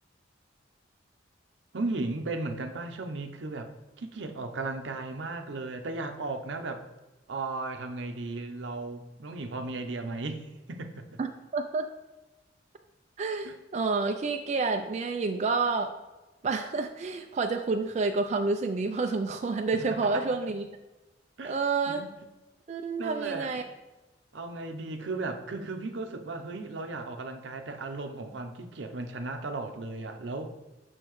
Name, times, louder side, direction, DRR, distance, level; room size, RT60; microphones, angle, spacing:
voice 1, 1.7-3.7 4.0-6.8 7.3-11.2 13.4-13.6 20.1-20.2 21.4-21.6 21.9-22.1 23.0-23.7 24.3-30.6, right 3 dB, 75° right, 6 dB, 0.7 m, -36 dB
voice 2, 11.2-11.9 13.2-15.9 16.4-20.7 21.4-22.0 22.7-23.6, right 4 dB, 40° right, 5 dB, 0.3 m, -29 dB
6.6 x 6.1 x 3.1 m, 1.1 s
head